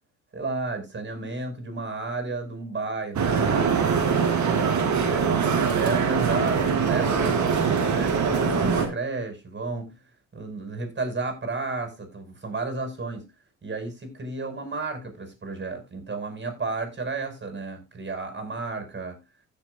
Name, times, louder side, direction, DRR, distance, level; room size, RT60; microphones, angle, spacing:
voice 1, 0.3-3.8 4.2-4.5 5.0-7.5 7.9-9.9 10.3-13.2 13.6-19.2, right 3 dB, 25° right, 5.6 m, -32 dB
sound 1, 3.1-8.9, right 6 dB, 45° right, 3.0 m, -23 dB
16.5 x 7.3 x 2.5 m
supercardioid pair, 75°, 39 cm